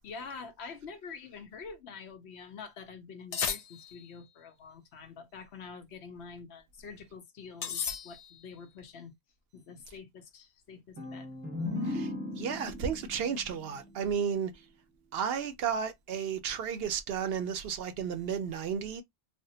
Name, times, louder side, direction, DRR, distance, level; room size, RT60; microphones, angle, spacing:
voice 1, 0.0-9.1 9.5-11.3, left 5 dB, 75° left, 0.9 m, -46 dB
sound 1, 3.3-4.2 7.6-8.5, left 7 dB, 60° left, 0.4 m, -35 dB
sound 2, 11.0-14.6, left 2 dB, 20° right, 0.8 m, -38 dB
voice 2, 11.8-14.5 15.1-19.0, right 7 dB, 65° right, 0.8 m, -33 dB
3.4 x 2.0 x 2.7 m
omnidirectional pair, 1.1 m